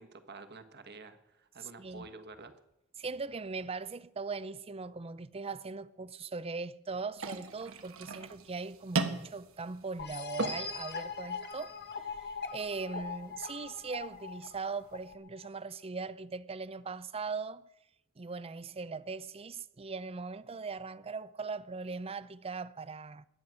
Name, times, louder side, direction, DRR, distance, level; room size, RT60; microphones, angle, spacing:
voice 1, 0.0-2.5, right 3 dB, 50° right, 1.5 m, -49 dB
voice 2, 1.6-2.1 3.0-11.8 12.0-17.6 18.2-23.3, right 4 dB, 25° right, 0.5 m, -40 dB
sound 1, 7.1-15.1, right 3 dB, 65° right, 1.3 m, -40 dB
sound 2, 10.0-15.5, left 5 dB, 50° left, 1.5 m, -41 dB
22.0 x 9.6 x 6.3 m
head